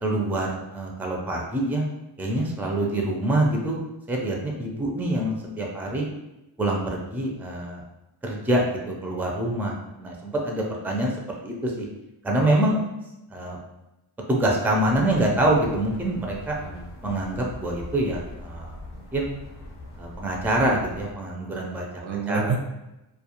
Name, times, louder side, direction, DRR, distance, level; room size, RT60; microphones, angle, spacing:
voice 1, 0.0-1.8 2.2-3.8 4.1-6.1 6.6-7.8 8.2-11.1 11.4-11.9 12.2-12.8 13.3-13.6 14.3-16.6 17.0-19.3 20.0-21.9 22.3-22.6, right 1 dB, 5° right, -1 dB, 0.4 m, -25 dB
sound 1, 14.8-21.1, left 2 dB, 65° left, 0.7 m, -41 dB
voice 2, 16.6-16.9 21.7-22.6, right 5 dB, 85° right, 2 dB, 0.6 m, -29 dB
2.3 x 2.2 x 2.8 m, 0.94 s
wide cardioid pair, 90°, 46 cm